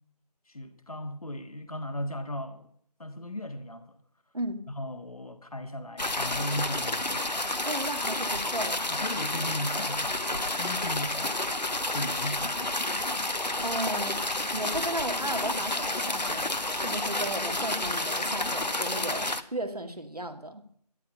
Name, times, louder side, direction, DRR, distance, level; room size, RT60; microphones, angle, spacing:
voice 1, 0.5-2.7 3.0-4.0 4.8-7.3 8.9-11.5 11.9-12.9, left 1 dB, 60° left, 1.7 m, -37 dB
sound 1, 6.0-19.4, left 2 dB, 85° left, 1.2 m, -30 dB
voice 2, 7.6-8.9 13.3-14.2 14.5-20.6, right 1 dB, 65° right, 2.3 m, -35 dB
12.5 x 11.5 x 6.7 m
figure-of-eight pair, 165°, 21 cm